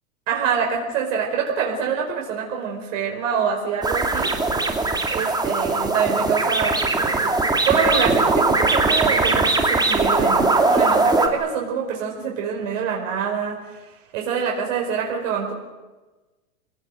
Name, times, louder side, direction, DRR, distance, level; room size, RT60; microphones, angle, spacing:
voice 1, 0.3-4.3 5.1-7.3 7.6-13.8 14.1-15.5, right 6 dB, 55° right, 0 dB, 5.0 m, -25 dB
sound 1, 3.8-11.3, right 3 dB, 10° right, 2.9 m, -20 dB
27.5 x 19.0 x 7.9 m, 1.2 s
hypercardioid pair, 120°, 44 cm